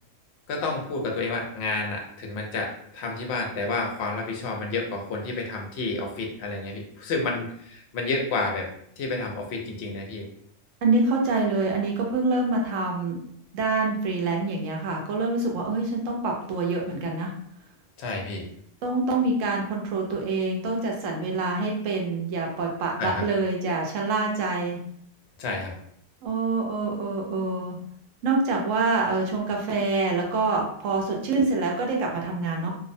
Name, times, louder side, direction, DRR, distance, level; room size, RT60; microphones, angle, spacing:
voice 1, 0.5-8.7 9.0-10.3 18.0-18.5 23.0-23.3 25.4-25.7, left 3 dB, 65° left, 1 dB, 0.8 m, -30 dB
voice 2, 10.8-13.2 13.5-17.3 18.8-24.8 26.2-27.8 28.2-32.7, right 3 dB, 85° right, 0 dB, 1.0 m, -26 dB
2.6 x 2.0 x 2.6 m, 0.66 s
omnidirectional pair, 1.3 m